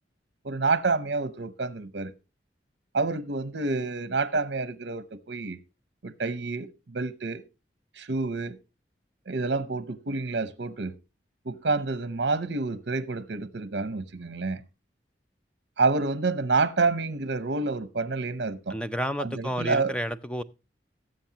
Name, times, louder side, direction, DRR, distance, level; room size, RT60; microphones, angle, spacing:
voice 1, 0.4-2.1 2.9-5.6 6.0-7.4 8.0-8.6 9.3-10.9 11.4-14.6 15.8-18.8 19.2-20.0, right 3 dB, 70° right, 0.8 m, -28 dB
voice 2, 18.7-20.4, equal, 5° left, 0.5 m, -31 dB
19.0 x 7.7 x 2.9 m
head